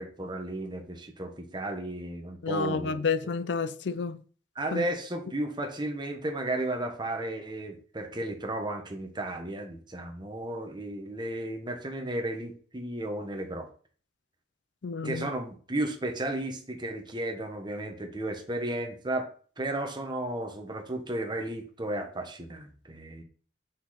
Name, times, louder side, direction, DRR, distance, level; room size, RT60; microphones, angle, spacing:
voice 1, 0.0-3.3 4.5-13.7 15.0-19.3 19.6-23.2, right 1 dB, 25° right, 1.2 m, -34 dB
voice 2, 2.4-4.2 4.7-4.8 14.8-15.3, left 4 dB, 70° left, 0.5 m, -30 dB
5.9 x 5.6 x 4.2 m
head